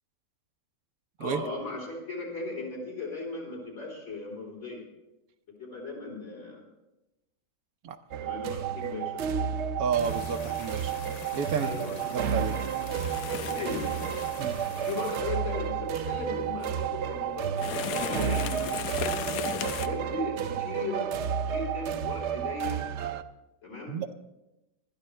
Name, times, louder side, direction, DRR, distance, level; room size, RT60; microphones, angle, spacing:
voice 1, 1.2-4.8 5.6-6.6 8.2-9.5 11.6-12.0 13.5-14.0 14.8-18.7 19.0-21.1 21.5-22.8 23.6-24.0, left 3 dB, 55° left, -2 dB, 3.7 m, -37 dB
sound 1, 8.1-23.2, right 8 dB, 65° right, 0.8 m, -31 dB
voice 2, 9.8-10.9 11.3-11.9 12.1-12.5 14.4-14.6 23.9-24.1, right 7 dB, 85° right, 7 dB, 1.2 m, -31 dB
sound 2, 10.0-15.2, left 4 dB, 35° left, 0.7 m, -43 dB
sound 3, 12.9-19.9, left 10 dB, 85° left, 1.1 m, -38 dB
20.5 x 12.5 x 3.3 m, 0.95 s
omnidirectional pair, 1.5 m